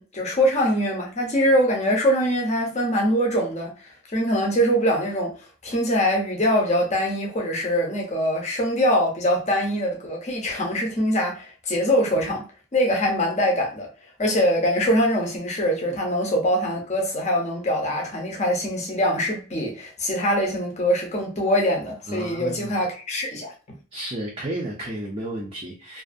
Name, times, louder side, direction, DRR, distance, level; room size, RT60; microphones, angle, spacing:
voice 1, 0.0-3.7 4.1-5.3 5.6-12.4 12.7-13.9 14.2-23.5, equal, 30° left, 0.7 m, -23 dB
voice 2, 22.1-22.7 23.9-26.0, right 1 dB, 25° right, 0.4 m, -32 dB
2.5 x 2.4 x 2.5 m
head